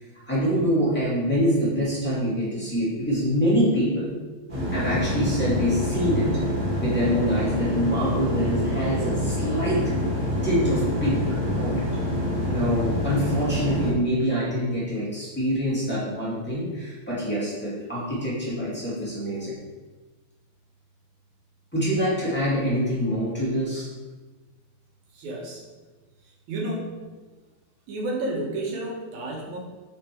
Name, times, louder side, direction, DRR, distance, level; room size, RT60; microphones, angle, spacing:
voice 1, 0.2-4.2 4.7-6.3 6.8-9.8 10.4-11.2 11.6-11.8 12.5-19.6 21.7-23.9, equal, 15° left, -10 dB, 0.4 m, -25 dB
sound 1, 4.5-13.9, left 1 dB, 45° right, 0.6 m, -26 dB
voice 2, 25.1-25.6 26.5-27.0 27.9-29.6, right 1 dB, 65° right, -2 dB, 2.2 m, -31 dB
5.3 x 5.0 x 4.5 m, 1.3 s
omnidirectional pair, 4.3 m